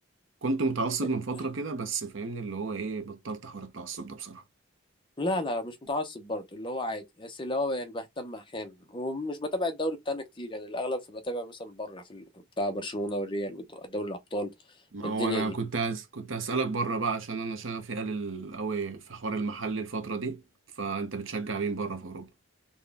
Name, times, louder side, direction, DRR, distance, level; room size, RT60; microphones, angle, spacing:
voice 1, 0.4-4.4 14.9-20.4 20.8-22.3, right 4 dB, 70° right, 0.8 m, -32 dB
voice 2, 5.2-12.2 12.6-14.5 15.0-15.5, left 1 dB, 25° left, 0.8 m, -33 dB
4.2 x 2.3 x 3.4 m
head